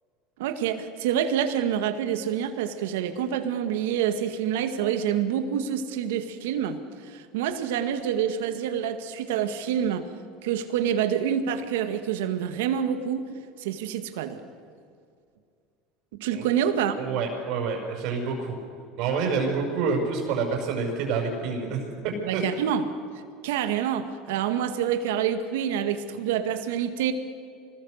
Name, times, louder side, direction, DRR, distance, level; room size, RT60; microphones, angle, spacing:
voice 1, 0.4-6.8 7.0-10.1 10.4-13.2 13.6-14.4 16.1-16.9 22.2-22.8 23.4-27.1, right 9 dB, 85° right, 8 dB, 2.0 m, -27 dB
voice 2, 17.0-18.6 19.0-22.4, right 5 dB, 65° right, 1 dB, 5.7 m, -28 dB
25.5 x 20.0 x 6.6 m, 2.3 s
supercardioid pair, 115°, 0 cm